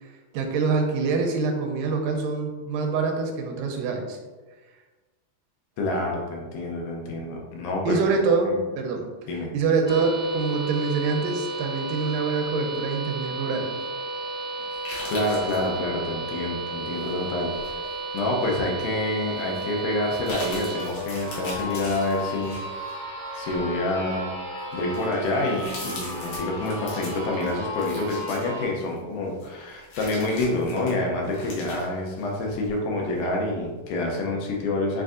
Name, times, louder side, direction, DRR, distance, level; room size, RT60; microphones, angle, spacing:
voice 1, 0.0-4.2 7.9-9.0 9.5-13.7, right 4 dB, 90° right, 3 dB, 2.2 m, -25 dB
voice 2, 5.8-8.0 8.5-8.6 9.3-9.5 15.1-17.5 18.1-22.6 23.3-24.3 24.7-35.0, left 2 dB, 80° left, -1 dB, 2.1 m, -27 dB
sound 1, 9.9-28.6, right 1 dB, 45° left, 1.2 m, -34 dB
sound 2, 14.7-15.7 17.0-17.9 18.4-18.5 19.5-19.6 20.0-22.9 23.4-23.6 24.3-24.4 24.7-29.0 29.4-32.7 33.1-33.2, left 2 dB, 65° left, 2.0 m, -40 dB
7.1 x 2.6 x 2.4 m, 1.3 s
omnidirectional pair, 3.8 m